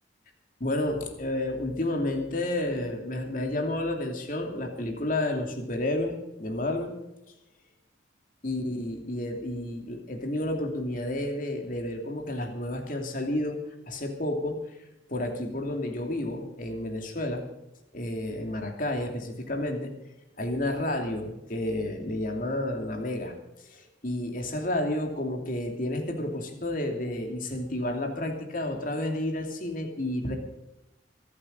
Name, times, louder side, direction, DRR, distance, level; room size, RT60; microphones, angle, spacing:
voice 1, 0.6-6.9 8.4-13.6 13.9-14.6 15.1-17.4 17.9-19.9 20.4-23.3 23.7-30.3, left 1 dB, 45° left, 3 dB, 2.8 m, -31 dB
25.0 x 8.7 x 5.3 m, 0.92 s
head